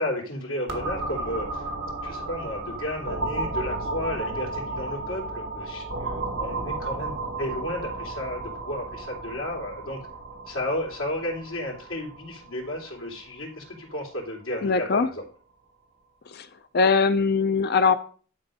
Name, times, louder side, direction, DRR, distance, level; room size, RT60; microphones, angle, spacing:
voice 1, 0.0-1.7 2.0-10.0 10.5-15.2, left 1 dB, 70° left, -2 dB, 3.3 m, -33 dB
sound 1, 0.7-14.2, right 2 dB, 60° right, 2.1 m, -33 dB
voice 2, 14.6-15.1 16.3-16.5 16.7-18.0, left 4 dB, 45° left, 11 dB, 0.5 m, -21 dB
11.5 x 4.4 x 5.0 m, 0.41 s
head